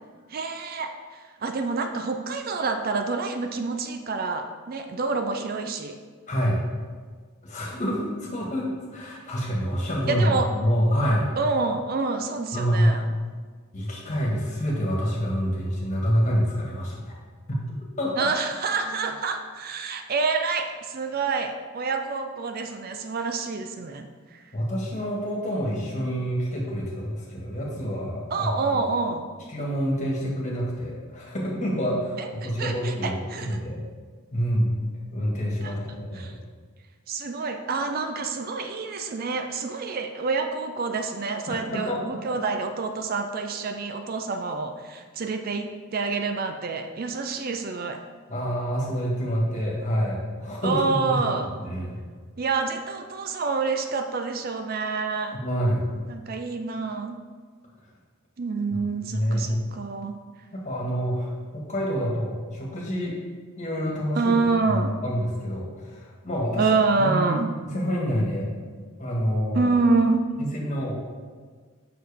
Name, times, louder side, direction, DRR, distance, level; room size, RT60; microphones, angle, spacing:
voice 1, 0.3-6.0 10.1-10.5 11.4-13.0 18.2-24.4 28.3-29.3 32.2-33.6 35.6-35.7 36.1-36.3 37.1-48.0 50.6-51.5 52.4-55.4 56.1-57.2 58.4-60.2 64.1-65.0 66.6-67.5 69.5-70.2, right 4 dB, 45° right, 6 dB, 0.4 m, -27 dB
voice 2, 6.3-6.6 7.4-11.3 12.5-13.0 13.7-17.2 17.5-17.6 18.0-18.3 24.5-28.8 29.5-33.8 34.3-34.7 35.1-36.4 41.5-42.2 48.3-51.2 51.6-52.0 55.3-55.8 59.1-59.6 60.6-63.2 63.6-64.3 64.7-66.7 66.9-67.3 67.6-68.5 69.0-69.7 70.4-70.9, equal, 35° left, -3 dB, 1.6 m, -27 dB
7.5 x 5.9 x 3.5 m, 1.5 s
head